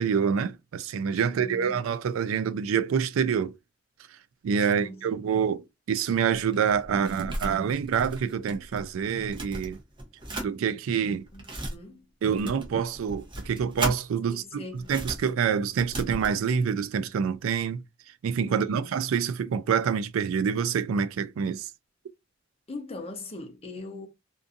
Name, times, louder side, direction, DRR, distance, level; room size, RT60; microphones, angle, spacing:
voice 1, 0.0-3.5 4.4-5.6 5.9-9.8 10.4-11.2 12.2-14.6 14.9-17.8 18.2-21.7, right 7 dB, 85° right, 0.3 m, -26 dB
voice 2, 1.2-1.9 4.6-5.3 11.3-12.0 14.3-14.9 18.5-19.0 22.7-24.1, left 2 dB, 30° left, 0.7 m, -41 dB
sound 1, 6.1-8.8 9.1-10.5 11.1-11.7 12.4-14.0 14.8-16.4, right 1 dB, 25° right, 0.8 m, -36 dB
2.5 x 2.5 x 2.5 m
head